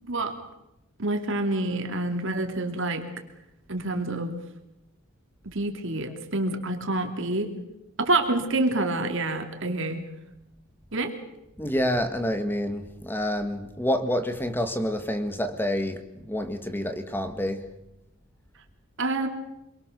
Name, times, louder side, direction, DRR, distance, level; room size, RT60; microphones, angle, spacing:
voice 1, 0.0-0.4 1.0-3.1 3.7-4.4 5.4-7.6 8.0-10.0 10.9-11.2 19.0-19.3, right 2 dB, 60° right, 4 dB, 3.1 m, -27 dB
voice 2, 11.6-17.7, equal, 10° left, 8 dB, 1.9 m, -28 dB
27.0 x 23.0 x 6.9 m, 0.89 s
head